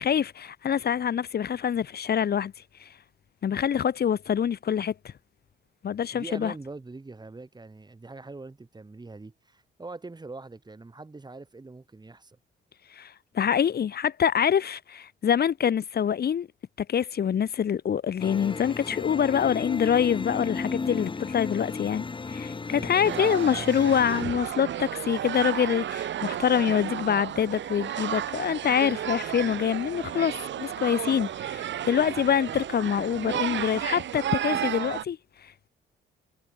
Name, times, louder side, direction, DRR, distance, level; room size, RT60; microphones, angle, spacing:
voice 1, 0.0-2.5 2.8-2.9 3.4-5.1 5.8-6.5 12.9-16.5 16.9-35.7, left 8 dB, 55° left, 1.9 m, -25 dB
voice 2, 6.1-12.4 22.7-23.1, right 3 dB, 20° right, 7.4 m, -43 dB
sound 1, 18.2-24.2, left 4 dB, 25° left, 1.3 m, -34 dB
sound 2, 23.0-35.1, right 11 dB, 65° right, 2.9 m, -32 dB
cardioid pair, 90°, 20 cm